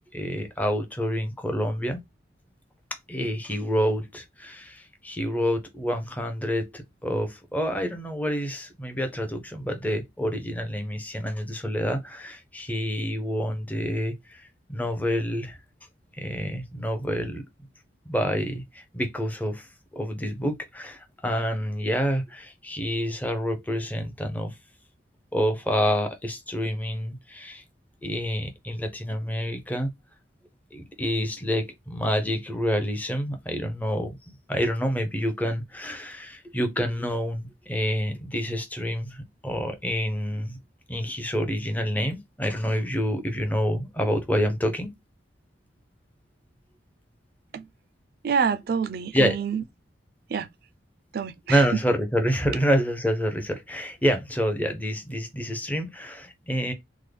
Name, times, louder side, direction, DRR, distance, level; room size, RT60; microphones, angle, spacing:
voice 1, 0.1-2.0 3.1-15.6 16.2-17.4 18.1-19.7 19.9-24.6 25.3-27.6 28.0-29.9 30.7-34.2 34.5-40.6 40.9-44.9 49.1-49.4 51.5-56.7, equal, 10° left, 0.6 m, -28 dB
voice 2, 48.2-49.6 50.3-50.5 51.1-51.6, right 6 dB, 55° right, 0.4 m, -27 dB
3.5 x 2.1 x 3.3 m
head